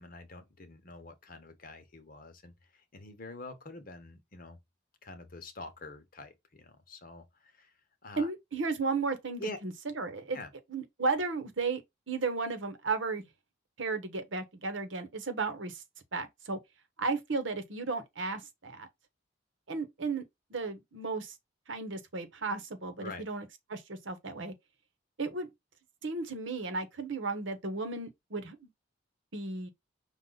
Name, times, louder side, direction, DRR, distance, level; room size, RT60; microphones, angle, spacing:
voice 1, 0.0-4.6 5.0-7.7 8.0-8.3 9.4-9.6 10.3-10.5 23.0-23.2, left 3 dB, 45° left, 0.9 m, -46 dB
voice 2, 8.2-10.4 10.7-13.2 13.8-15.8 16.1-16.6 17.0-18.9 19.7-20.2 20.5-21.3 21.7-24.5 25.2-25.5 26.0-28.7 29.3-29.7, right 4 dB, 70° right, 1.0 m, -34 dB
5.5 x 2.4 x 3.9 m
head